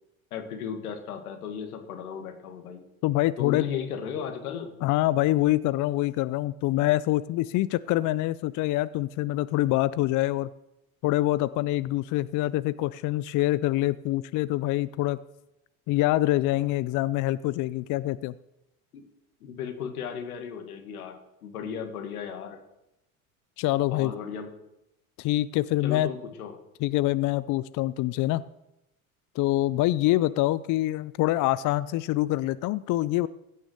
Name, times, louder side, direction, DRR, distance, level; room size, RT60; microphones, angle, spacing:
voice 1, 0.3-2.8 3.4-4.7 18.9-19.1 19.4-22.6 23.9-24.5 25.8-26.6, left 7 dB, 85° left, 6 dB, 1.9 m, -35 dB
voice 2, 3.0-3.7 4.8-10.5 11.0-15.2 15.9-18.3 23.6-24.1 25.2-26.1 26.8-28.4 29.4-33.3, left 16 dB, 45° left, 17 dB, 0.5 m, -25 dB
16.0 x 6.3 x 6.5 m, 0.89 s
hypercardioid pair, 75°, 43 cm